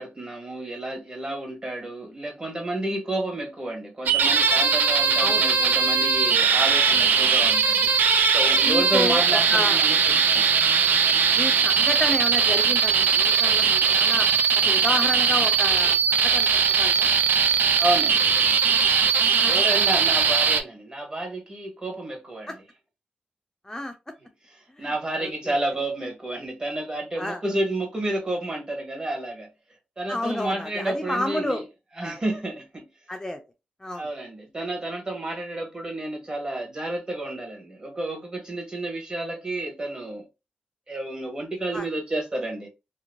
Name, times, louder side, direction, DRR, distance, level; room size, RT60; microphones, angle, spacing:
voice 1, 0.0-7.9 8.3-10.5 17.8-18.3 19.1-22.6 24.5-29.5 30.0-31.6 32.0-32.8 33.9-40.2 40.9-42.7, right 1 dB, 30° right, 1.4 m, -30 dB
sound 1, 4.1-20.6, right 6 dB, 85° right, 0.4 m, -20 dB
voice 2, 8.6-9.8 11.4-14.3 14.7-17.1 19.4-19.6 22.5-22.6 23.6-23.9 24.8-24.9 25.2-25.5 27.2-27.4 30.1-31.6 32.0-32.2 33.1-33.4 33.8-34.1 41.7-41.9, left 1 dB, 15° left, 0.4 m, -30 dB
3.0 x 2.1 x 2.5 m
cardioid pair, 80°, 3 cm